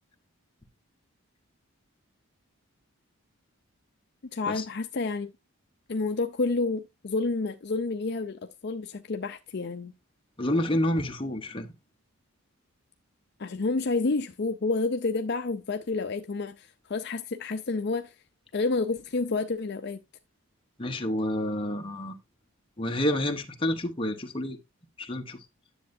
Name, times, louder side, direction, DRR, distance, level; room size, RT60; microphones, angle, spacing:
voice 1, 4.3-5.3 5.9-9.9 13.4-18.1 18.5-20.0, left 3 dB, 50° left, 0.5 m, -29 dB
voice 2, 10.4-11.7 20.8-22.2 22.8-24.6 25.0-25.4, left 1 dB, 25° left, 0.9 m, -29 dB
10.0 x 7.5 x 2.6 m
head